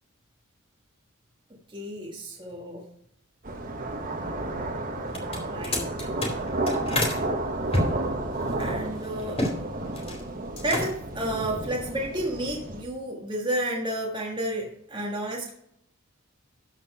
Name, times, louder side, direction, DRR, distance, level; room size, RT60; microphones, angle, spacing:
voice 1, 1.7-2.8 5.5-6.1 8.6-9.4 10.6-15.5, right 1 dB, 20° right, -2 dB, 1.6 m, -31 dB
sound 1, 3.4-12.8, right 2 dB, 40° right, 1.3 m, -32 dB
sound 2, 5.1-7.2 7.7-9.6 9.8-10.2 10.5-11.1, left 1 dB, 30° left, 2.6 m, -29 dB
13.5 x 4.5 x 5.5 m, 0.72 s
head